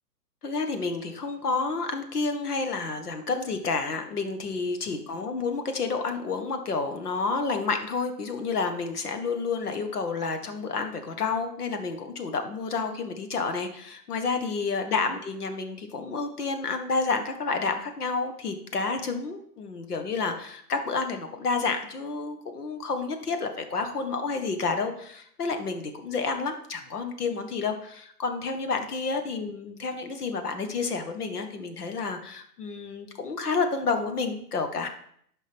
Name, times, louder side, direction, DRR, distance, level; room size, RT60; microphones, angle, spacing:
voice 1, 0.4-34.9, left 4 dB, 65° left, 6 dB, 1.3 m, -30 dB
9.8 x 5.2 x 3.5 m, 0.66 s
hypercardioid pair, 175°, 48 cm